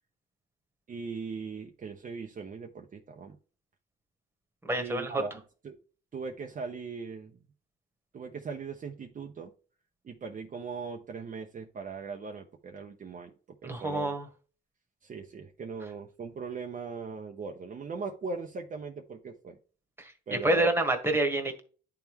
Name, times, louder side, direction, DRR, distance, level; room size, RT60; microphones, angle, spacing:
voice 1, 0.9-3.4 4.7-5.8 6.1-7.4 8.1-9.5 10.0-13.3 13.6-14.2 15.0-19.6 20.3-20.7, right 5 dB, 40° right, 2 dB, 0.8 m, -39 dB
voice 2, 4.7-5.1 13.6-14.2 20.0-21.6, right 1 dB, 10° right, 4 dB, 1.5 m, -28 dB
10.5 x 3.6 x 3.1 m, 0.39 s
cardioid pair, 90°, 20 cm